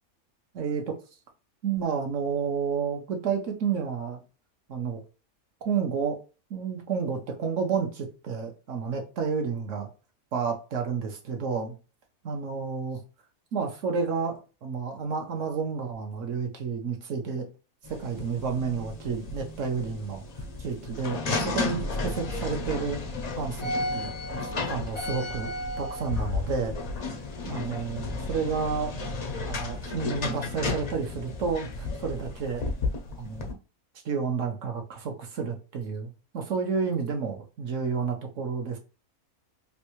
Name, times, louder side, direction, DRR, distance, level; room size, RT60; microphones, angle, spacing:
voice 1, 0.5-1.0 1.6-4.2 4.7-5.0 5.6-6.2 6.5-9.9 10.3-11.7 12.2-13.0 13.5-17.5 17.9-20.2 20.6-23.0 23.3-24.1 24.7-26.8 27.5-29.0 29.4-32.6 33.2-33.5 34.0-38.8, right 5 dB, 65° right, 1.0 m, -30 dB
sound 1, 17.8-33.5, left 3 dB, 65° left, 0.4 m, -33 dB
3.2 x 2.6 x 2.9 m
omnidirectional pair, 1.5 m